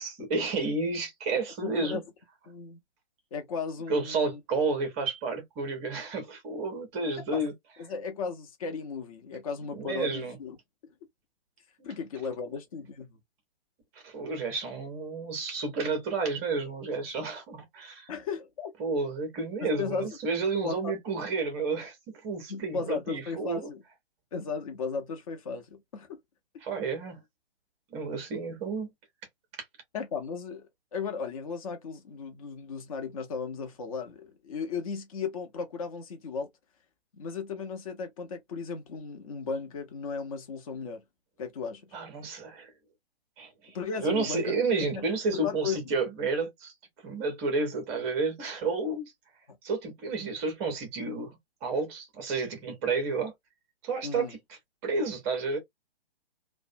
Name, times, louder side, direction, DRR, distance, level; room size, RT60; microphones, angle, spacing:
voice 1, 0.0-2.0 3.9-7.5 9.7-10.4 11.8-11.9 14.0-18.1 18.8-22.0 22.2-23.7 26.6-27.2 27.9-28.9 41.9-42.7 43.4-46.7 47.0-49.1 49.6-51.3 51.6-53.3 53.8-54.4 54.8-55.6, right 3 dB, 15° right, 0.6 m, -31 dB
voice 2, 1.6-2.0 2.5-2.8 3.3-4.4 7.3-7.4 7.8-10.6 11.8-13.2 18.1-18.7 19.6-20.1 20.6-20.9 22.5-23.8 24.3-26.2 29.9-36.5 37.2-41.0 41.4-41.8 43.7-45.8 54.0-54.3, left 5 dB, 35° left, 0.6 m, -35 dB
2.4 x 2.1 x 2.5 m
figure-of-eight pair, 130°, 32 cm